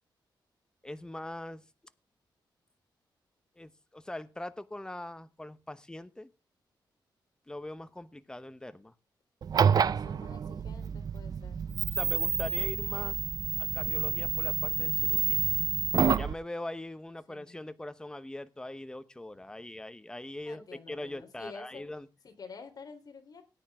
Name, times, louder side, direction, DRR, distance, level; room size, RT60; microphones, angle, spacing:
voice 1, 0.8-1.6 3.6-6.3 7.5-8.9 11.9-13.2 13.6-15.5 16.1-22.1, left 1 dB, 10° left, 13 dB, 0.9 m, -41 dB
sound 1, 9.4-16.3, right 7 dB, 50° right, 0.7 m, -28 dB
voice 2, 9.7-11.7 17.3-17.6 20.5-21.8 22.2-23.4, left 4 dB, 50° left, 5 dB, 3.7 m, -49 dB
18.0 x 9.9 x 3.6 m, 0.30 s
wide cardioid pair, 130°, 8 cm